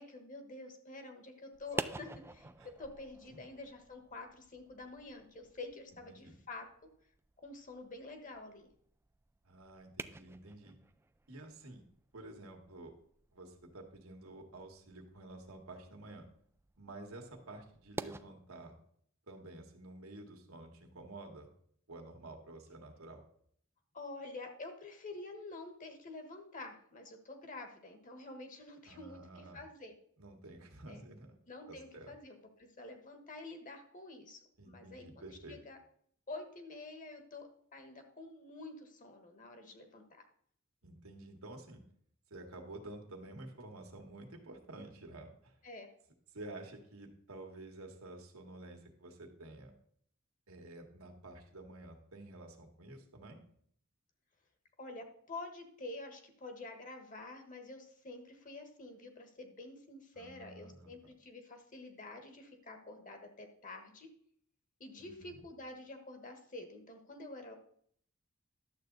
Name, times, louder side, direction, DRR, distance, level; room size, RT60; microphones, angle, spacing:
voice 1, 0.0-2.5 2.8-6.6 7.4-8.7 23.9-29.9 30.9-31.0 31.5-34.4 34.6-35.8 36.3-40.2 45.6-45.9 54.8-64.1 64.8-67.5, left 2 dB, 40° left, 5 dB, 1.4 m, -48 dB
sound 1, 1.5-18.2, right 3 dB, 10° right, 0.3 m, -49 dB
voice 2, 9.4-10.8 11.3-11.8 12.1-12.9 13.3-16.2 16.8-18.8 19.3-21.5 21.9-23.2 28.9-29.6 30.2-31.4 31.7-32.1 34.6-35.6 40.8-41.8 42.3-45.5 46.3-49.7 50.5-53.4 60.1-60.9 65.0-65.4, right 2 dB, 90° right, 2 dB, 1.7 m, -50 dB
11.5 x 7.3 x 4.0 m, 0.63 s
head